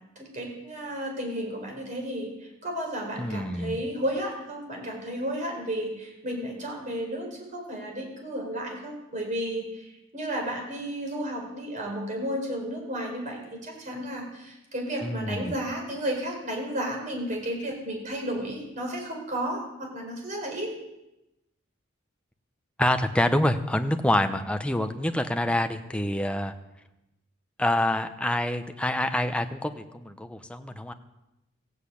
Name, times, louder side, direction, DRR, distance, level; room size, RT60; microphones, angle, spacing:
voice 1, 0.2-20.7, right 1 dB, 40° right, 1 dB, 4.6 m, -33 dB
voice 2, 3.2-3.8 15.0-15.6 22.8-26.5 27.6-30.9, left 1 dB, 5° left, 7 dB, 0.7 m, -26 dB
15.5 x 8.1 x 8.5 m, 0.92 s
head